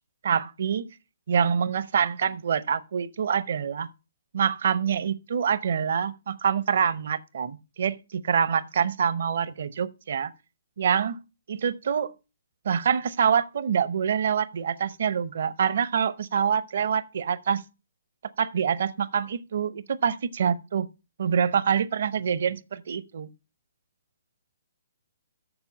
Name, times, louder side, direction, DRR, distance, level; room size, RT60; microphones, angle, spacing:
voice 1, 0.2-0.9 1.3-3.9 4.3-10.3 10.8-11.2 11.5-12.1 12.6-17.6 18.4-20.9 21.2-23.3, right 7 dB, 60° right, 0.6 m, -26 dB
7.0 x 6.8 x 5.1 m
figure-of-eight pair, 135°, 0 cm